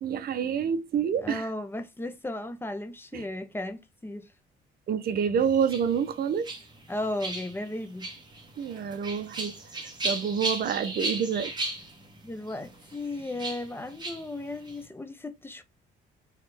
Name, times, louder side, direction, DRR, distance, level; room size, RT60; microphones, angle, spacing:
voice 1, 0.0-1.5 3.1-3.2 4.9-6.5 8.6-9.6 10.0-11.5, right 7 dB, 55° right, 0.6 m, -27 dB
voice 2, 1.2-4.3 6.9-8.1 12.2-15.6, left 1 dB, 10° left, 0.8 m, -35 dB
sound 1, 5.4-14.9, right 2 dB, 20° right, 1.3 m, -37 dB
4.0 x 3.0 x 3.3 m
cardioid pair, 105°, 19 cm